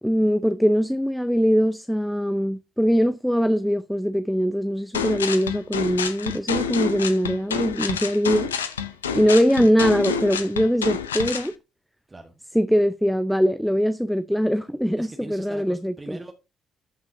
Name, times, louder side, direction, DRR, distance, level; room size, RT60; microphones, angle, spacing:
voice 1, 0.0-8.5 9.1-11.5 12.5-16.2, equal, ahead, 0.6 m, -22 dB
sound 1, 4.9-11.5, left 7 dB, 85° left, 0.6 m, -28 dB
voice 2, 12.1-12.4 15.0-16.3, right 2 dB, 25° right, 1.3 m, -40 dB
13.5 x 5.5 x 2.7 m
figure-of-eight pair, 45°, 0 cm